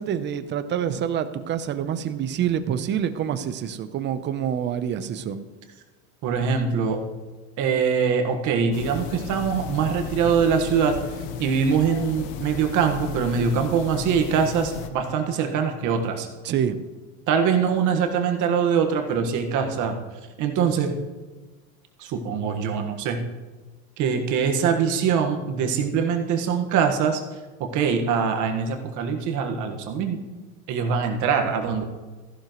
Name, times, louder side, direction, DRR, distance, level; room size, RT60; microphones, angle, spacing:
voice 1, 0.0-5.4 16.4-16.8, right 9 dB, 30° right, 11 dB, 0.7 m, -26 dB
voice 2, 6.2-7.0 7.6-11.0 11.4-16.3 17.3-19.9 20.4-20.9 22.0-23.2 24.0-27.2 27.6-30.2 30.7-31.8, right 6 dB, 50° right, 4 dB, 1.5 m, -23 dB
sound 1, 8.7-14.9, left 7 dB, 60° left, 1.2 m, -35 dB
14.0 x 11.5 x 3.1 m, 1.3 s
supercardioid pair, 140°, 40 cm